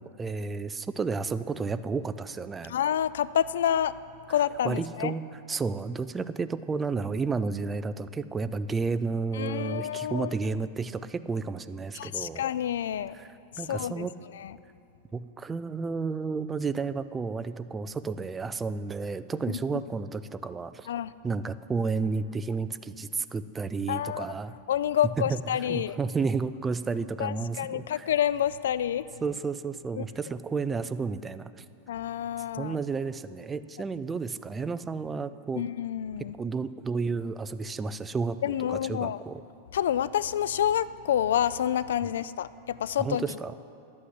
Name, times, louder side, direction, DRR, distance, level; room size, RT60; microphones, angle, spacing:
voice 1, 0.0-2.8 4.6-12.4 13.1-13.3 13.6-14.1 15.1-20.9 21.2-24.5 25.2-28.1 29.2-31.6 32.6-35.6 36.4-39.4 43.0-43.5, right 4 dB, 10° right, 13 dB, 0.3 m, -32 dB
voice 2, 2.7-3.9 4.3-5.1 9.3-10.3 11.9-13.1 13.7-14.1 14.3-14.5 19.5-19.6 20.9-21.1 23.9-24.3 24.7-26.0 27.2-29.1 30.0-30.1 31.9-32.8 35.5-36.3 38.4-39.2 39.7-43.2, left 10 dB, 90° left, 17 dB, 0.4 m, -28 dB
11.5 x 8.5 x 8.1 m, 2.6 s
supercardioid pair, 155°, 0 cm